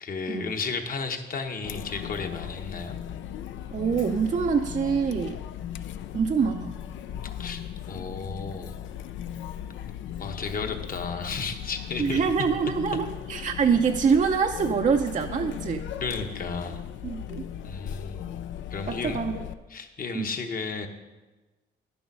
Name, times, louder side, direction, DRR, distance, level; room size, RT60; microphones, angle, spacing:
voice 1, 0.0-3.0 7.4-7.6 7.9-8.7 10.2-12.2 16.0-16.8 17.6-18.2 18.7-19.2 19.7-20.9, left 4 dB, 45° left, 5 dB, 1.1 m, -33 dB
Chatter, 1.6-19.5, left 10 dB, 70° left, 0.5 m, -37 dB
voice 2, 3.7-5.4 6.1-6.7 12.0-15.9 17.0-17.4 18.9-19.4 20.1-20.3, right 6 dB, 40° right, 5 dB, 0.5 m, -25 dB
10.5 x 7.0 x 5.4 m, 1.2 s
cardioid pair, 90°, 20 cm